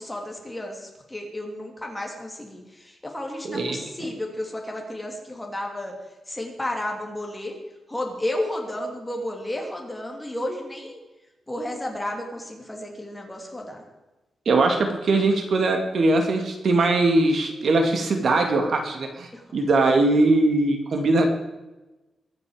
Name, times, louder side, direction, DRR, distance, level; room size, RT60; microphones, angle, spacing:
voice 1, 0.0-6.0 6.3-7.6 7.9-11.0 11.5-13.8 19.3-19.5, left 1 dB, 10° left, 1 dB, 3.1 m, -32 dB
voice 2, 3.4-3.9 14.5-21.3, right 2 dB, 55° right, 4 dB, 2.3 m, -21 dB
22.5 x 9.5 x 5.1 m, 1.1 s
wide cardioid pair, 145°, 0 cm